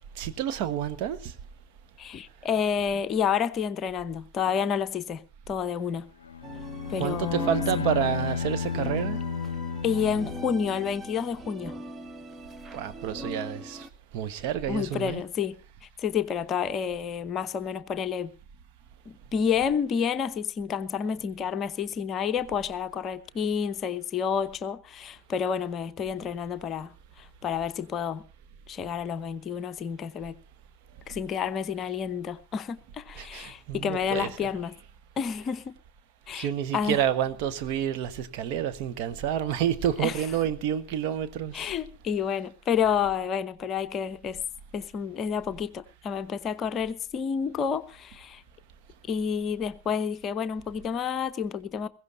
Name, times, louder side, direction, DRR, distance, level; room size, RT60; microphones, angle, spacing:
voice 1, 0.2-1.3 7.0-9.2 12.7-13.9 14.1-15.2 33.2-34.5 36.3-41.7, right 10 dB, 45° right, 1.3 m, -29 dB
voice 2, 2.0-6.1 6.9-7.8 9.8-11.8 14.7-18.3 19.1-28.2 28.7-30.3 31.1-34.7 35.2-35.8 36.3-37.0 40.0-40.2 41.5-44.4 44.7-48.4 49.1-51.9, left 7 dB, 30° left, 0.8 m, -29 dB
Bowed string instrument, 6.2-11.0, left 6 dB, 70° left, 0.6 m, -33 dB
sound 1, 6.4-13.9, equal, 15° right, 0.9 m, -40 dB
21.5 x 16.5 x 2.7 m
figure-of-eight pair, 90°, 0 cm